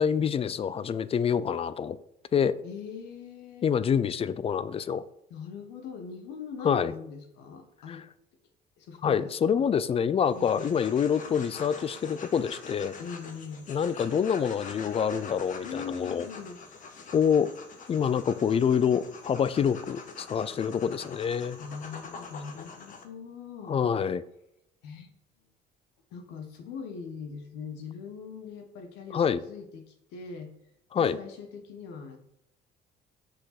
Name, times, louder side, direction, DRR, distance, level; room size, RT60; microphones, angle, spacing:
voice 1, 0.0-2.0 2.3-2.6 3.6-5.0 6.6-6.9 7.9-8.0 9.0-12.9 13.7-16.3 17.1-17.5 17.9-21.6 23.7-24.2 29.1-29.4 30.9-31.2, left 7 dB, 35° left, 0.5 m, -26 dB
voice 2, 2.6-3.7 5.3-8.0 8.8-9.7 10.3-10.7 13.0-13.7 15.6-16.6 21.5-23.8 24.8-25.1 26.1-30.5 30.9-32.2, left 6 dB, 90° left, 1.3 m, -41 dB
sound 1, 10.2-23.0, left 4 dB, 50° left, 1.4 m, -45 dB
6.4 x 5.3 x 5.9 m
cardioid pair, 110°, 17 cm